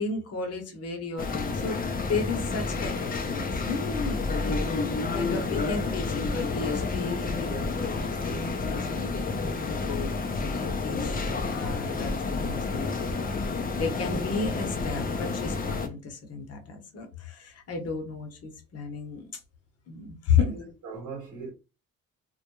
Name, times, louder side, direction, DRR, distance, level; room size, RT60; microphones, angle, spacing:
voice 1, 0.0-10.1 10.4-11.2 11.5-13.3 13.8-19.4 19.9-20.5, left 5 dB, 50° left, 0.9 m, -33 dB
sound 1, 1.2-15.9, left 3 dB, 30° left, 0.5 m, -30 dB
voice 2, 20.4-21.5, right 4 dB, 75° right, 1.0 m, -40 dB
2.2 x 2.1 x 2.9 m
supercardioid pair, 70°, 31 cm